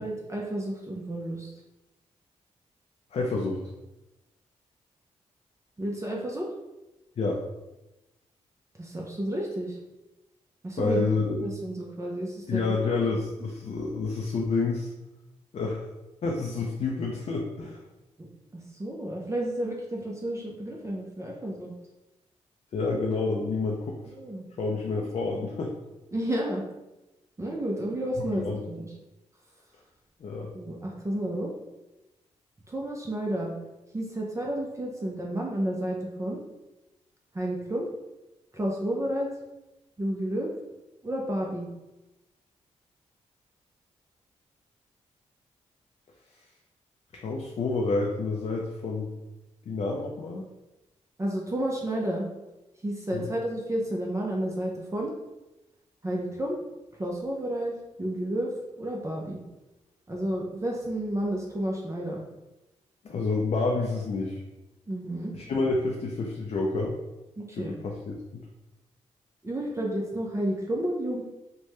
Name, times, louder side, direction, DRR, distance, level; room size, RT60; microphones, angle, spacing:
voice 1, 0.0-1.5 5.8-6.5 8.8-9.8 10.6-11.1 11.4-13.0 18.2-21.7 24.1-24.5 25.0-25.1 26.1-26.6 27.4-28.9 30.5-31.5 32.7-33.5 33.9-36.4 37.3-37.9 38.5-39.3 40.0-40.5 41.0-41.7 51.2-52.3 52.8-55.1 56.0-56.6 57.0-58.5 58.8-59.4 60.1-62.2 64.9-65.3 67.4-67.7 69.4-71.2, right 1 dB, 25° right, -2 dB, 0.6 m, -31 dB
voice 2, 3.1-3.6 7.2-7.4 10.8-11.4 12.5-14.9 15.5-15.9 16.2-17.8 22.7-24.0 24.6-25.7 28.2-28.6 30.2-30.5 47.1-49.1 49.7-50.4 53.1-53.3 63.0-64.4 65.3-67.0 67.6-68.1, left 3 dB, 55° left, -1 dB, 0.5 m, -28 dB
3.1 x 2.2 x 2.9 m, 1.0 s
cardioid pair, 55°, 13 cm